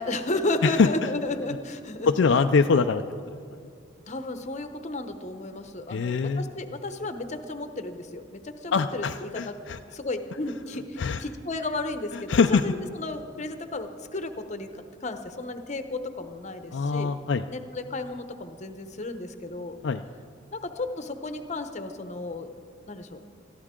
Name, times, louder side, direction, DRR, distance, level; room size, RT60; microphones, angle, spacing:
voice 1, 0.0-2.1 4.1-9.5 9.9-14.7 15.0-17.1 17.5-19.8 20.5-22.5 22.9-23.2, left 2 dB, 40° left, 8 dB, 0.8 m, -33 dB
voice 2, 2.1-3.4 5.9-6.5 8.7-9.8 11.0-11.2 12.1-12.6 16.7-17.4 19.8-20.0, left 5 dB, 65° left, 7 dB, 0.4 m, -23 dB
21.0 x 13.5 x 3.7 m, 2.3 s
head